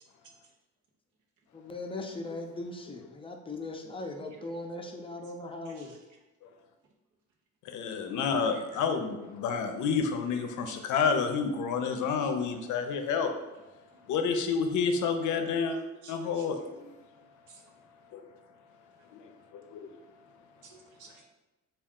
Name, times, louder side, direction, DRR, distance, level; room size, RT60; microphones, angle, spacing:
voice 1, 1.5-5.9, left 2 dB, 20° left, 3 dB, 0.5 m, -39 dB
voice 2, 5.6-6.0 8.2-8.8 10.4-10.8 12.0-12.3 15.6-16.5 17.5-17.6 20.6-21.2, right 4 dB, 75° right, 1 dB, 0.8 m, -53 dB
voice 3, 7.6-13.3 14.1-15.8 16.1-16.9 18.1-18.2 19.1-19.9, left 5 dB, 75° left, 6 dB, 0.5 m, -29 dB
3.5 x 2.4 x 3.6 m, 1.1 s
cardioid pair, 90°, 30 cm